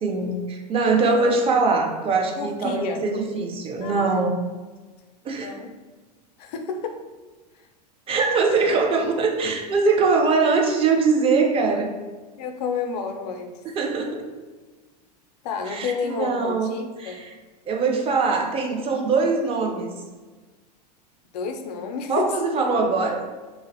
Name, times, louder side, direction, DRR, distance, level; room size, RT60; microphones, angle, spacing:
voice 1, 0.0-4.4 5.2-5.5 8.1-11.9 13.8-14.3 15.7-16.7 17.0-17.2 17.7-19.9 22.1-23.2, right 4 dB, 25° right, 2 dB, 0.4 m, -22 dB
voice 2, 1.0-1.4 2.4-3.1 3.8-4.3 5.3-5.7 6.4-7.0 7.5-7.7 12.4-13.5 15.4-17.2 21.3-22.3, left 5 dB, 70° left, 5 dB, 0.4 m, -30 dB
2.5 x 2.0 x 2.6 m, 1.3 s
hypercardioid pair, 100°, 21 cm